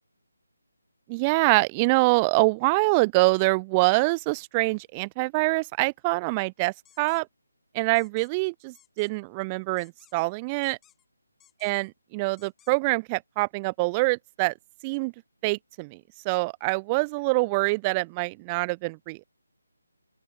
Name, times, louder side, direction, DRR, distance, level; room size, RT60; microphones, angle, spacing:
voice 1, 1.1-7.3 7.7-10.8 11.6-14.5 14.8-15.1 15.4-16.0 16.2-19.2, right 27 dB, 20° right, 0.5 m, -25 dB
sound 1, 6.9-7.2 8.0-8.3 8.7-9.1 9.8-10.3 10.6-11.1 11.4-11.9 12.4-12.7, left 11 dB, 10° left, 3.9 m, -60 dB
open air
figure-of-eight pair, 155°, 0 cm